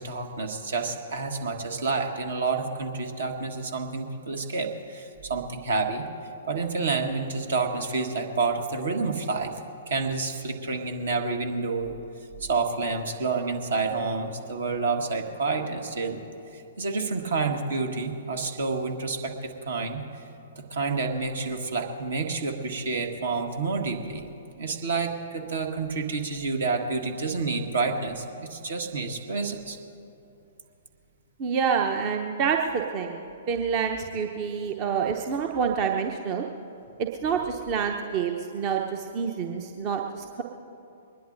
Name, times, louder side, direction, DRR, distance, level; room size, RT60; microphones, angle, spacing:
voice 1, 0.0-6.0 6.5-9.5 9.9-12.0 12.4-16.2 16.5-20.0 20.7-24.2 24.6-29.8, right 4 dB, 60° right, 5 dB, 1.6 m, -29 dB
voice 2, 31.4-36.4 37.0-40.4, right 6 dB, 35° right, 3 dB, 0.8 m, -27 dB
23.0 x 20.0 x 2.6 m, 2.7 s
figure-of-eight pair, 115°, 0 cm